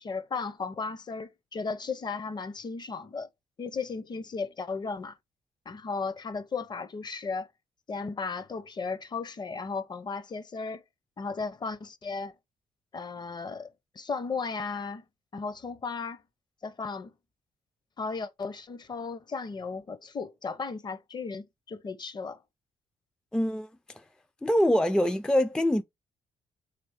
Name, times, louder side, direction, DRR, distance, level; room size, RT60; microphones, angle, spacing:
voice 1, 0.0-3.3 3.6-5.2 5.7-7.5 7.9-10.8 11.2-12.3 12.9-13.7 13.9-15.0 15.3-16.2 16.6-17.1 18.0-22.4, left 4 dB, 35° left, 0.7 m, -35 dB
voice 2, 23.3-23.7 24.4-25.8, left 1 dB, 5° left, 0.3 m, -24 dB
3.3 x 3.1 x 4.8 m
cardioid pair, 85°, 13 cm